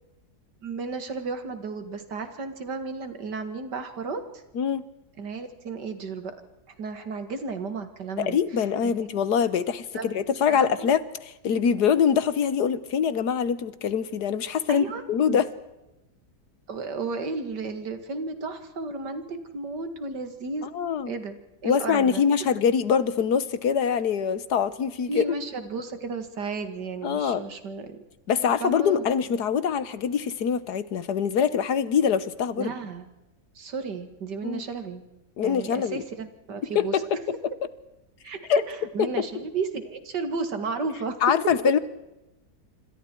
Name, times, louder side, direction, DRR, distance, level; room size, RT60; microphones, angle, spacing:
voice 1, 0.6-4.2 5.2-6.4 6.8-8.4 9.0-9.2 9.9-10.1 10.5-10.9 14.7-15.4 16.7-20.7 21.1-22.2 25.1-28.0 28.6-29.0 32.6-33.1 33.6-35.0 35.4-37.0 38.2-38.4 38.7-41.2, right 4 dB, 85° right, 8 dB, 2.6 m, -33 dB
voice 2, 4.5-4.9 8.2-15.5 20.7-21.1 21.6-25.2 27.0-27.4 28.3-32.7 34.4-34.6 35.4-36.0 36.7-37.4 38.5-38.6 39.0-39.3 41.2-41.8, left 7 dB, 75° left, 15 dB, 1.6 m, -24 dB
27.0 x 25.5 x 4.6 m, 0.96 s
omnidirectional pair, 1.8 m